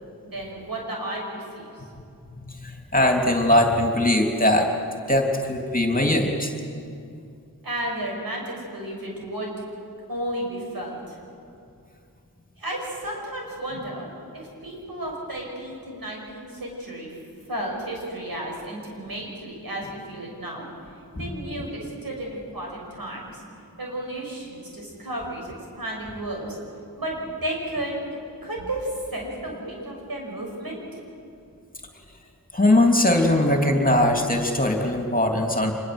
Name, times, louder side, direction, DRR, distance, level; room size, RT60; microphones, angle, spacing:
voice 1, 0.2-1.8 7.6-9.5 10.1-11.2 12.6-14.1 14.3-17.2 17.5-20.6 21.1-23.4 23.8-26.6 27.0-28.0 28.4-30.8, right 1 dB, 75° right, -1 dB, 6.8 m, -33 dB
voice 2, 2.4-4.7 5.1-6.5 21.1-21.2 32.5-35.7, left 1 dB, 25° left, 2 dB, 3.1 m, -21 dB
25.0 x 21.0 x 8.0 m, 2.5 s
cardioid pair, 40°, 36 cm